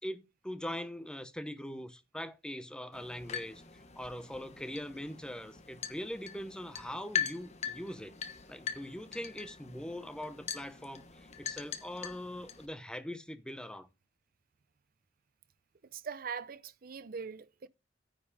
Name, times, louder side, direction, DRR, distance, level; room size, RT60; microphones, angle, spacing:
voice 1, 0.0-3.6 4.0-8.1 8.5-13.9, left 1 dB, 5° left, 0.8 m, -42 dB
sound 1, 2.9-12.7, left 8 dB, 40° left, 1.2 m, -42 dB
voice 2, 15.9-17.7, right 6 dB, 50° right, 0.5 m, -41 dB
9.9 x 5.3 x 5.0 m
head